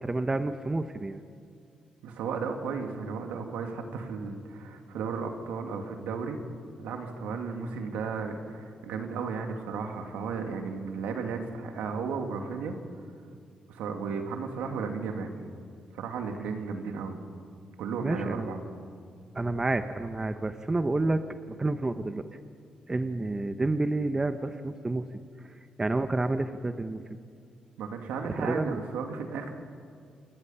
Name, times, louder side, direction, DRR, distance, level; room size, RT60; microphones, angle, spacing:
voice 1, 0.0-1.2 18.0-18.5 19.3-22.2 22.9-25.1 25.8-27.0 28.2-28.8, right 2 dB, 25° right, 9 dB, 1.1 m, -29 dB
voice 2, 2.0-6.4 6.8-12.7 13.7-15.3 15.9-17.2 17.8-18.6 27.8-29.5, right 5 dB, 90° right, 4 dB, 2.4 m, -34 dB
28.5 x 21.0 x 5.8 m, 2.3 s
cardioid pair, 70°, 3 cm